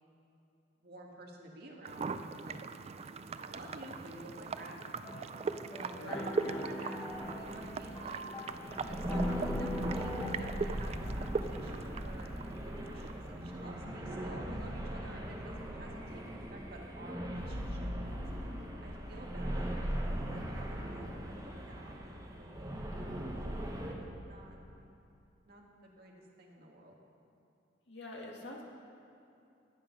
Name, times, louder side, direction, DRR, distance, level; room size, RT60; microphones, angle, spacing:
voice 1, 0.8-2.6 3.4-4.8 5.7-7.0 7.4-8.2 8.9-18.2 18.8-19.7 20.3-23.7 24.3-24.6 25.4-25.6 26.0-26.9, right 1 dB, 60° right, -1 dB, 1.8 m, -51 dB
sound 1, 1.8-13.9, right 4 dB, 35° right, 0.4 m, -40 dB
sound 2, 5.0-10.4, left 1 dB, 15° left, 1.5 m, -42 dB
voice 2, 5.9-6.7 27.9-28.6, left 2 dB, 80° left, -1 dB, 1.9 m, -46 dB
sound 3, 7.1-23.9, equal, 20° right, 1.3 m, -39 dB
18.0 x 7.3 x 5.3 m, 2.7 s
head